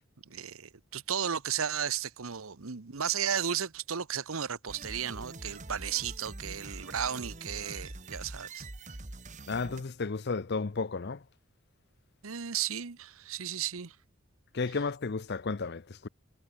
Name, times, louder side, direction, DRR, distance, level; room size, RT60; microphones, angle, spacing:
voice 1, 0.3-8.7 12.2-14.0, right 8 dB, 80° right, 1.0 m, -34 dB
sound 1, 4.7-9.8, right 2 dB, 35° right, 1.8 m, -44 dB
voice 2, 9.5-11.2 14.5-16.1, left 4 dB, 50° left, 0.6 m, -33 dB
head